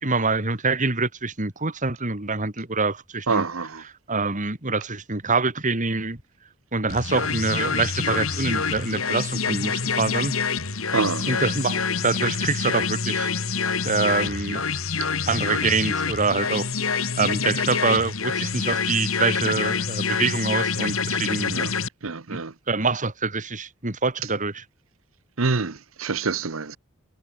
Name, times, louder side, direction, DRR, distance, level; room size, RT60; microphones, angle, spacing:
voice 1, 0.0-3.4 4.1-6.2 6.7-10.3 11.3-13.3 13.8-14.6 15.3-21.5 22.3-22.4 22.7-24.6, right 4 dB, 40° right, 2.9 m, -25 dB
voice 2, 3.3-3.8 10.9-11.3 21.5-21.7 22.0-22.5 25.4-26.8, right 4 dB, 75° right, 1.1 m, -26 dB
sound 1, 6.9-21.9, left 5 dB, 85° left, 2.6 m, -26 dB
head